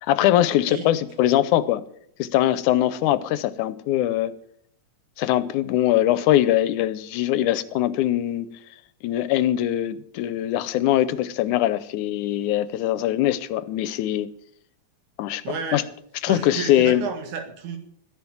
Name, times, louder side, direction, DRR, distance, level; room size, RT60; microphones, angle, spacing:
voice 1, 0.0-1.8 2.2-4.3 5.2-8.5 9.0-14.3 15.2-15.4 15.7-15.8 16.2-17.0, left 13 dB, 90° left, 2.2 m, -22 dB
voice 2, 15.4-15.8 16.3-17.8, right 5 dB, 90° right, 3.2 m, -31 dB
14.0 x 11.0 x 7.3 m
omnidirectional pair, 3.5 m